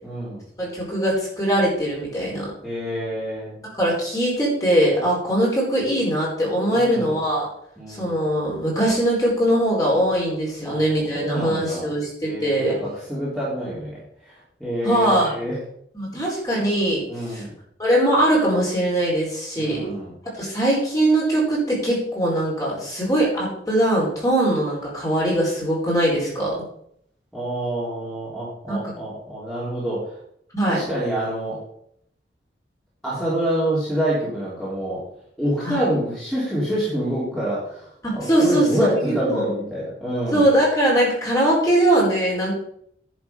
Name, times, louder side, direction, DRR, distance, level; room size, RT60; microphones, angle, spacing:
voice 1, 0.0-0.4 2.6-3.6 6.7-7.2 7.8-8.1 10.6-10.8 11.1-11.9 12.2-12.8 13.1-15.5 17.1-17.6 19.6-20.1 27.3-30.1 30.7-31.5 33.0-35.0 35.4-40.5, equal, 5° left, -9 dB, 3.5 m, -27 dB
voice 2, 0.6-2.5 3.8-7.5 7.9-12.8 14.8-15.4 15.9-17.4 17.8-19.9 20.4-26.6 28.7-28.8 30.5-30.8 35.6-35.8 38.0-39.5 40.3-42.5, right 1 dB, 20° left, -4 dB, 4.6 m, -21 dB
10.5 x 7.2 x 5.3 m, 0.69 s
head